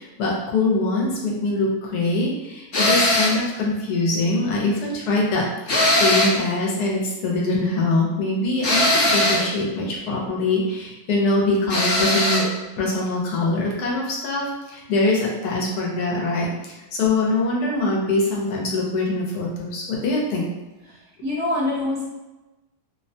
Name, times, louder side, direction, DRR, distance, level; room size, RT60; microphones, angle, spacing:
voice 1, 0.0-12.4 12.8-20.5, left 2 dB, 85° left, -3 dB, 1.3 m, -23 dB
sound 1, 2.7-3.4 5.7-6.5 8.6-9.5 11.7-12.5, left 1 dB, 50° left, 0.8 m, -19 dB
voice 2, 20.9-22.1, left 2 dB, 60° right, -5 dB, 0.8 m, -25 dB
3.0 x 2.1 x 2.6 m, 1.1 s
omnidirectional pair, 1.6 m